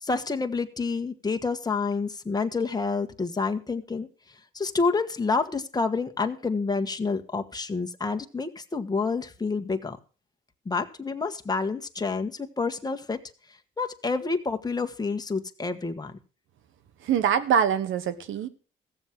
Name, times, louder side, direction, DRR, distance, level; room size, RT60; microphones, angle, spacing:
voice 1, 0.0-4.1 4.5-10.0 10.6-13.2 13.8-16.1, left 4 dB, 20° left, 1.4 m, -28 dB
voice 2, 17.0-18.5, right 8 dB, 80° right, 1.3 m, -24 dB
15.0 x 7.3 x 6.2 m
cardioid pair, 90°, 20 cm